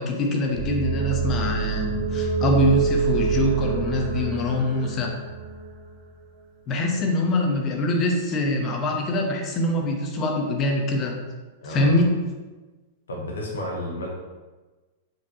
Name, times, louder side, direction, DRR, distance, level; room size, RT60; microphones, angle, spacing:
voice 1, 0.0-5.1 6.7-11.2 11.6-12.3, left 1 dB, 35° left, 1 dB, 0.8 m, -24 dB
sound 1, 0.5-6.0, right 5 dB, 50° right, 0.6 m, -26 dB
voice 2, 11.6-12.0 13.1-14.1, left 1 dB, 80° left, -2 dB, 0.8 m, -32 dB
5.2 x 2.6 x 2.8 m, 1.2 s
hypercardioid pair, 100°, 0 cm